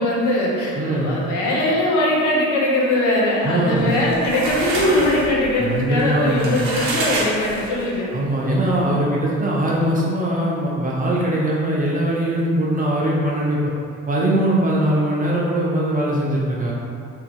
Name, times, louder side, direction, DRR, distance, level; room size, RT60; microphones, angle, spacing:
voice 1, 0.0-8.1, left 1 dB, 50° left, -4 dB, 0.7 m, -21 dB
voice 2, 0.7-1.2 3.4-4.0 5.6-6.7 8.1-13.6 14.1-16.7, right 1 dB, 20° right, -5 dB, 0.4 m, -21 dB
sound 1, 3.8-8.0, right 2 dB, 65° right, 0.6 m, -27 dB
3.0 x 2.4 x 2.3 m, 2.3 s
figure-of-eight pair, 45°, 39 cm